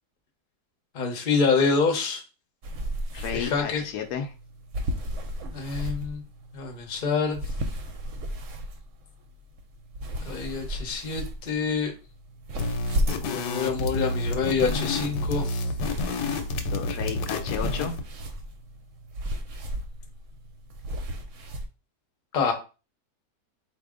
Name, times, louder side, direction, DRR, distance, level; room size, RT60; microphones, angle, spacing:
voice 1, 0.9-2.2 3.3-3.8 5.5-6.2 6.5-7.4 10.2-11.9 13.2-15.7 22.3-22.5, left 5 dB, 40° left, 3 dB, 0.8 m, -26 dB
sound 1, 2.6-21.7, equal, 60° right, 0.9 m, -35 dB
voice 2, 3.1-4.3 16.7-17.9, left 8 dB, 75° left, 6 dB, 1.1 m, -32 dB
sound 2, 12.6-18.0, left 2 dB, 90° left, 1.3 m, -30 dB
4.2 x 2.7 x 3.7 m, 0.32 s
omnidirectional pair, 1.8 m